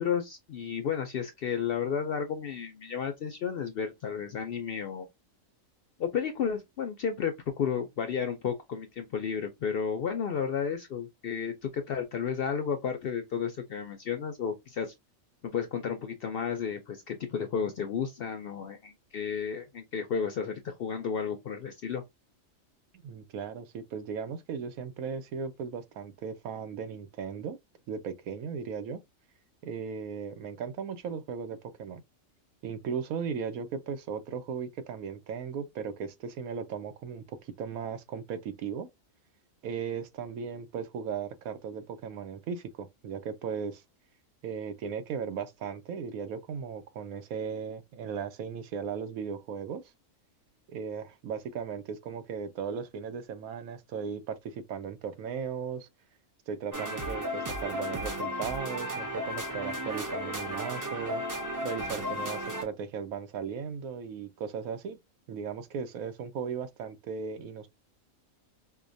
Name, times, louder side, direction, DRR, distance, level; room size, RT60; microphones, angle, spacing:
voice 1, 0.0-5.1 6.0-14.9 15.4-22.0, left 7 dB, 65° left, 0.5 m, -32 dB
voice 2, 22.9-27.6 27.9-29.0 29.6-32.0 32.6-38.9 39.6-43.8 44.4-49.8 50.7-55.9 56.5-65.0 65.3-67.7, right 6 dB, 90° right, 1.1 m, -37 dB
sound 1, 56.7-62.6, equal, 25° right, 0.4 m, -34 dB
4.7 x 2.2 x 2.5 m
omnidirectional pair, 1.4 m